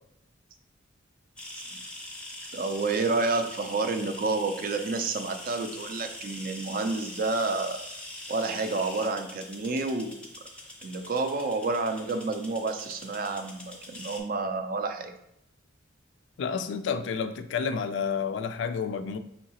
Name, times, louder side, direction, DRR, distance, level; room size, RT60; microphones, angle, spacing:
sound 1, 1.4-14.2, left 1 dB, 5° left, 0.6 m, -43 dB
voice 1, 2.5-7.8 8.3-10.2 10.8-15.1, right 3 dB, 45° right, 7 dB, 0.4 m, -29 dB
voice 2, 16.4-19.2, left 6 dB, 65° left, 10 dB, 0.3 m, -30 dB
5.4 x 2.8 x 2.8 m, 0.80 s
head